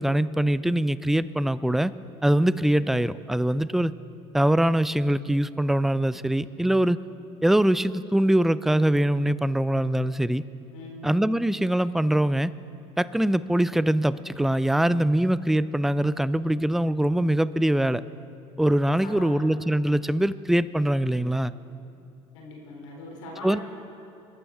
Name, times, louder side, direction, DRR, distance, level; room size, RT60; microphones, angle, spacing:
voice 1, 0.0-1.9 2.2-3.9 4.3-7.0 7.4-10.4 11.0-12.5 13.0-18.0 18.6-21.5 23.4-23.6, right 1 dB, ahead, 17 dB, 0.3 m, -23 dB
voice 2, 10.7-11.1 19.0-19.4 22.3-23.6, left 2 dB, 80° left, -1 dB, 3.2 m, -41 dB
21.5 x 12.0 x 3.6 m, 2.9 s
hypercardioid pair, 75°, 15 cm